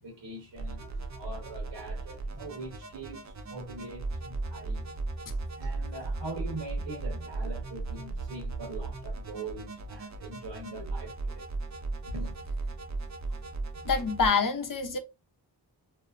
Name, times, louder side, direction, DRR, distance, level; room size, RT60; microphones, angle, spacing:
voice 1, 0.0-4.9 5.5-11.5 12.1-12.3, right 2 dB, 70° right, 1.1 m, -42 dB
Bass-Middle, 0.6-14.3, right 3 dB, 40° right, 0.5 m, -36 dB
voice 2, 13.8-15.0, left 5 dB, 45° left, 0.7 m, -26 dB
2.8 x 2.0 x 2.4 m
cardioid pair, 45°, 44 cm